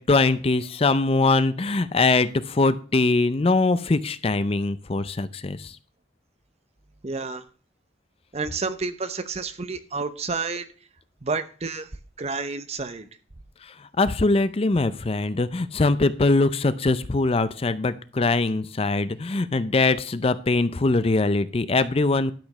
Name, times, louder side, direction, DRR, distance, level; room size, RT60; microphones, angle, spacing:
voice 1, 0.0-5.7 14.0-22.3, left 3 dB, 30° left, 0.5 m, -22 dB
voice 2, 7.0-7.4 8.3-10.7 11.2-11.9 12.2-13.1, right 4 dB, 35° right, 0.8 m, -30 dB
12.0 x 5.2 x 6.5 m
head